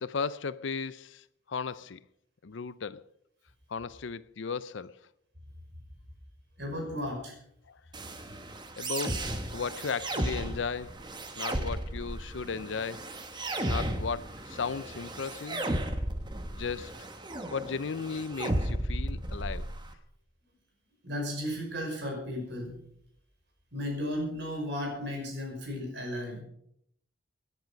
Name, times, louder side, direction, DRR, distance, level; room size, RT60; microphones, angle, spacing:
voice 1, 0.0-2.0 2.4-3.0 3.7-5.0 7.7-7.8 8.8-9.3 9.5-11.0 11.4-13.0 13.7-15.7 16.5-17.0 17.5-19.7, left 5 dB, 70° left, 0.5 m, -35 dB
voice 2, 6.6-7.4 21.0-22.8 23.7-26.4, left 1 dB, 55° right, 5.7 m, -34 dB
sound 1, 7.9-19.9, right 1 dB, 20° right, 1.2 m, -35 dB
18.0 x 11.0 x 5.2 m
head